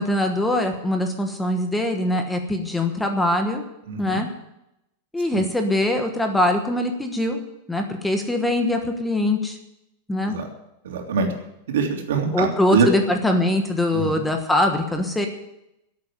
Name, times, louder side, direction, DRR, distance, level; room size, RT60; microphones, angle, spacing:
voice 1, 0.0-3.6 4.0-4.3 5.1-7.4 7.7-9.6 10.1-10.4 12.3-15.3, left 1 dB, 5° left, 5 dB, 1.2 m, -22 dB
voice 2, 3.9-4.2 5.3-5.4 10.2-10.5 10.8-11.3 11.7-12.9 13.9-14.2, right 5 dB, 90° right, 2 dB, 3.2 m, -24 dB
12.5 x 8.4 x 9.9 m, 0.86 s
supercardioid pair, 170°, 0 cm